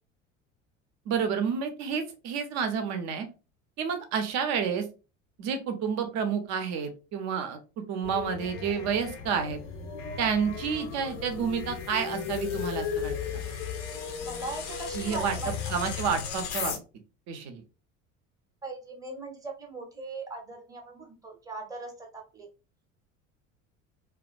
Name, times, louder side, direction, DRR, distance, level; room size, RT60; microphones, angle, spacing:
voice 1, 1.1-3.3 3.8-4.9 5.4-9.6 10.2-13.4 14.9-15.4 15.7-16.7 17.3-17.6, right 6 dB, 45° right, 7 dB, 0.6 m, -30 dB
sound 1, 8.0-16.8, left 7 dB, 65° left, 0.6 m, -35 dB
voice 2, 14.2-15.8 18.6-22.5, right 2 dB, 10° right, 1 dB, 0.7 m, -39 dB
2.3 x 2.2 x 2.4 m, 0.32 s
figure-of-eight pair, 65°, 40 cm